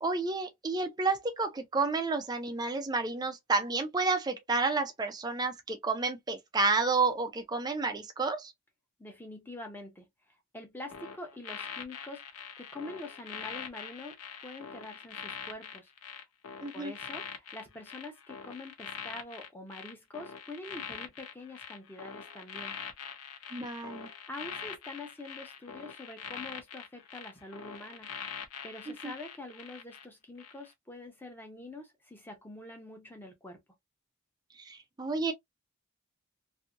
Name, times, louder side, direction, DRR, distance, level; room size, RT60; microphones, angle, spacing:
voice 1, 0.0-8.5 16.6-16.9 23.5-24.1 28.9-29.1 34.6-35.3, right 3 dB, 20° right, 0.4 m, -30 dB
voice 2, 9.0-10.1 10.5-14.2 14.4-15.9 16.7-22.8 24.3-33.6, left 2 dB, 10° left, 0.8 m, -45 dB
sound 1, 10.9-30.0 30.4-30.7, left 7 dB, 80° left, 0.7 m, -43 dB
2.7 x 2.6 x 2.5 m
head